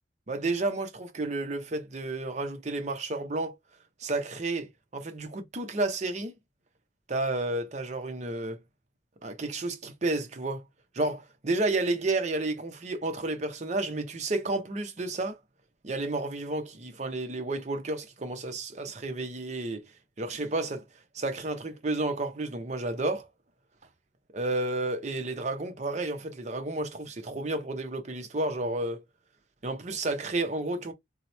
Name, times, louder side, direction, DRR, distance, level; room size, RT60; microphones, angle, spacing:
voice 1, 0.3-3.5 4.0-6.3 7.1-8.6 9.2-10.6 10.9-15.4 15.8-19.8 20.2-20.8 21.1-23.3 24.3-29.0 29.6-30.9, right 2 dB, 40° right, 0.6 m, -31 dB
2.9 x 2.1 x 4.0 m
head